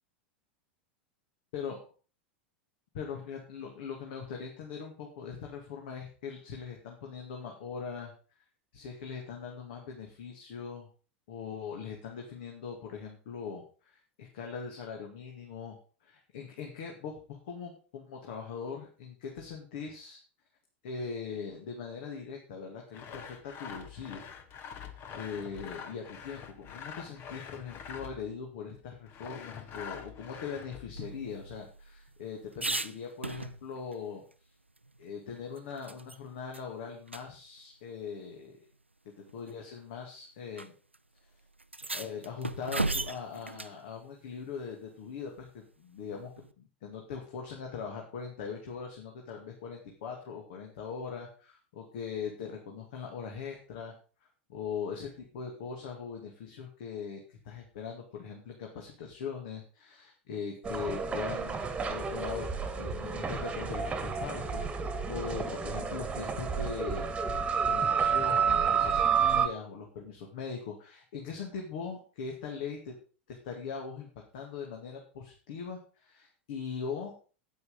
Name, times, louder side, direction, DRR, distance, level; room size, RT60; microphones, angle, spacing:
voice 1, 2.9-8.1 8.7-10.9 11.3-20.2 20.8-24.2 25.1-34.2 35.0-38.6 39.2-40.7 41.9-46.3 46.6-53.9 54.5-62.5 62.8-67.1 67.6-72.9 73.3-74.1 74.3-77.1, left 6 dB, 55° left, 1 dB, 2.3 m, -41 dB
Sawing, 22.9-28.3 29.1-31.1, left 7 dB, 35° left, 1.4 m, -45 dB
sound 1, 30.9-33.9 34.3-34.4 34.8-36.2 36.5-36.7 37.1-37.2 38.3-38.4 39.3-39.6 40.6-40.7 40.9-41.0 41.6-43.8 46.1-46.5, right 2 dB, 85° right, 0.6 m, -37 dB
sound 2, 60.6-69.5, right 6 dB, 15° right, 1.7 m, -30 dB
9.5 x 9.4 x 5.4 m, 0.38 s
figure-of-eight pair, 85°, 6 cm